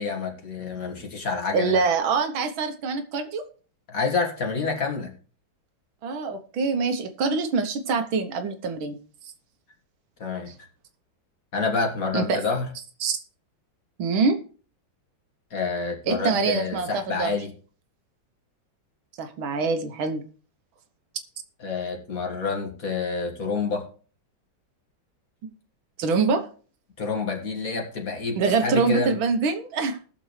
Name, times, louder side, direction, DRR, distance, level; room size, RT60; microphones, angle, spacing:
voice 1, 0.0-1.8 3.9-5.1 10.2-10.5 11.5-12.7 15.5-17.5 21.6-23.9 27.0-29.2, left 4 dB, 45° left, 2.0 m, -28 dB
voice 2, 1.5-3.5 6.0-9.0 10.5-10.6 12.1-12.4 13.0-13.2 14.0-14.4 16.1-17.4 19.2-20.2 26.0-26.5 28.4-30.0, right 4 dB, 80° right, 1.8 m, -25 dB
20.0 x 6.8 x 3.2 m
omnidirectional pair, 2.2 m